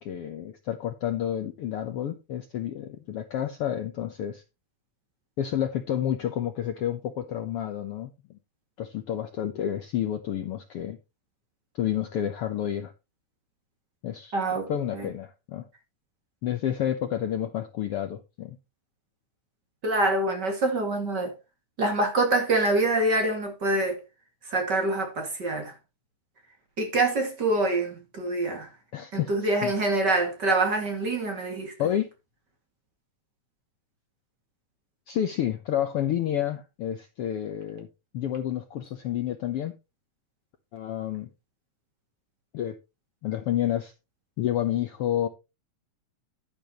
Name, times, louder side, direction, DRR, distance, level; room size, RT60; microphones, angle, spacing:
voice 1, 0.0-4.4 5.4-8.1 8.8-11.0 11.8-12.9 14.0-14.4 14.7-15.7 16.4-18.6 28.9-29.7 31.8-32.1 35.1-37.9 38.1-39.7 40.7-41.3 42.5-42.7 43.2-43.9 44.4-45.3, left 11 dB, 65° left, 1.5 m, -29 dB
voice 2, 14.3-14.7 14.9-15.1 19.8-21.3 21.8-24.0 24.5-25.7 26.8-28.7 29.1-31.7, right 2 dB, 35° right, 2.6 m, -25 dB
10.5 x 10.5 x 3.0 m
omnidirectional pair, 3.5 m